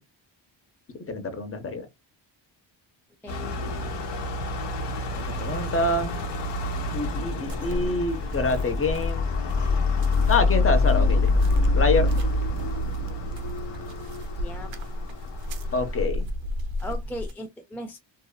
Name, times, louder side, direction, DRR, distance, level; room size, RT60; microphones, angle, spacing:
voice 1, 1.1-1.9 5.3-6.1 6.9-9.3 10.3-11.3 11.8-12.1 15.7-16.3, left 2 dB, 30° left, 0.7 m, -26 dB
sound 1, 3.3-16.0, left 3 dB, 60° left, 0.9 m, -26 dB
sound 2, 7.5-17.3, left 1 dB, 70° right, 0.7 m, -32 dB
voice 2, 14.4-14.7 16.8-18.0, left 1 dB, 5° left, 0.3 m, -37 dB
2.6 x 2.3 x 2.2 m
cardioid pair, 100°, 46 cm